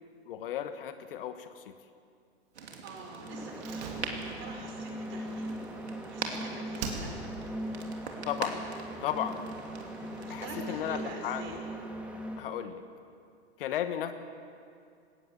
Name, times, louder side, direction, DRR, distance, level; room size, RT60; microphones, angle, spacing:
voice 1, 0.3-1.7 8.3-8.6 9.0-9.4 10.3-11.4 12.4-12.8 13.6-14.1, left 10 dB, 55° left, 10 dB, 1.3 m, -34 dB
sound 1, 2.5-11.1, right 4 dB, 75° right, 3.0 m, -43 dB
voice 2, 2.8-5.6 6.1-7.2 9.0-9.1 10.3-11.6, right 3 dB, 35° right, 1 dB, 5.5 m, -45 dB
sound 2, 3.2-12.5, right 1 dB, 5° right, 2.2 m, -40 dB
Slam, 3.6-6.3 6.8-7.5 7.8-7.9, right 4 dB, 60° right, 3.6 m, -42 dB
20.0 x 18.0 x 7.4 m, 2.4 s
figure-of-eight pair, 105°, 33 cm